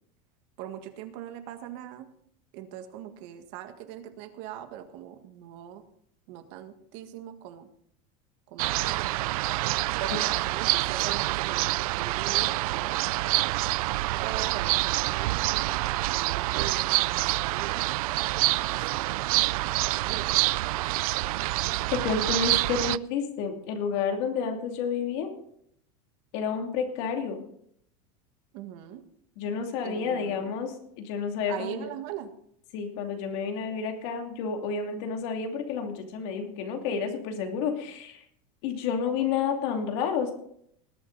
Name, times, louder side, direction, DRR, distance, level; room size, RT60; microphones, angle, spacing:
voice 1, 0.6-2.1 2.5-5.8 6.3-7.7 8.5-9.1 9.9-13.5 14.2-17.8 18.6-19.2 20.1-20.5 21.2-21.6 28.5-29.0 29.8-30.6 31.5-32.3, right 10 dB, 50° right, 7 dB, 1.7 m, -41 dB
sound 1, 8.6-23.0, right 19 dB, 75° right, 0.4 m, -27 dB
voice 2, 21.9-25.3 26.3-27.4 29.4-31.9 32.7-38.2 38.6-40.3, left 6 dB, 50° left, 4 dB, 2.7 m, -30 dB
20.0 x 8.8 x 4.0 m, 0.70 s
supercardioid pair, 175°, 19 cm